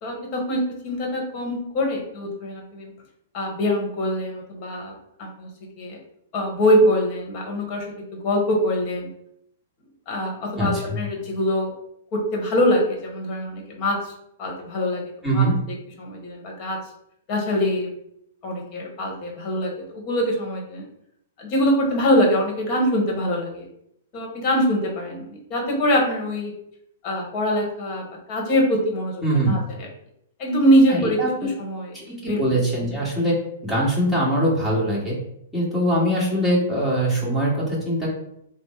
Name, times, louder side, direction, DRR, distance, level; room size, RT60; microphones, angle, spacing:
voice 1, 0.0-2.9 3.3-4.9 5.2-5.5 5.8-6.0 6.3-7.9 8.1-9.1 10.1-11.7 12.1-14.1 14.4-15.4 16.0-16.8 17.3-17.9 18.4-20.8 21.4-23.7 24.1-26.5 27.0-29.1 29.5-29.9 30.4-32.4, equal, 40° left, 0 dB, 1.2 m, -23 dB
voice 2, 10.5-11.0 15.2-15.5 29.2-29.6 30.9-31.3 32.1-33.4 33.6-35.2 35.5-38.1, right 1 dB, ahead, -7 dB, 1.5 m, -22 dB
3.3 x 2.0 x 4.2 m, 0.75 s
hypercardioid pair, 130°, 0 cm